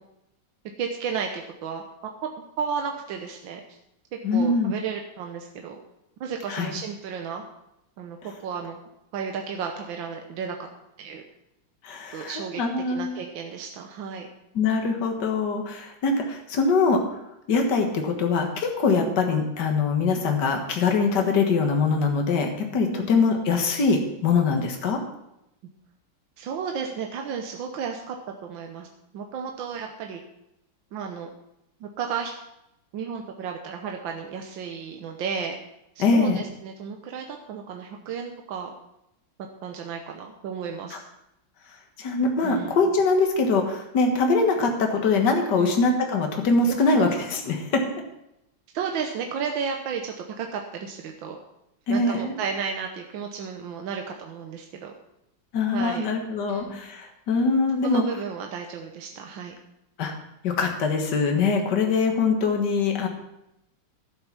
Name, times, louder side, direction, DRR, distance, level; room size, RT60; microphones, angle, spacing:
voice 1, 0.8-2.1 2.6-3.8 4.3-5.8 6.2-7.4 8.0-8.8 9.1-10.6 11.0-11.2 12.1-12.6 12.9-14.3 19.0-19.2 22.9-23.2 26.4-28.2 28.4-28.9 29.1-30.2 30.9-31.3 31.8-32.3 32.9-35.6 36.0-38.8 39.6-41.0 42.4-42.8 45.5-45.8 46.7-47.1 48.7-51.4 51.9-54.9 55.7-56.1 56.5-56.8 57.8-59.6, right 6 dB, 85° right, 3 dB, 1.7 m, -33 dB
voice 2, 4.2-4.7 6.5-6.7 11.8-13.2 14.6-17.0 17.5-25.0 36.0-36.4 40.9-41.0 42.0-47.8 51.9-52.4 55.5-58.0 60.0-60.2 60.4-63.1, left 4 dB, 65° left, 3 dB, 2.1 m, -23 dB
11.5 x 8.7 x 6.0 m, 0.84 s
omnidirectional pair, 2.1 m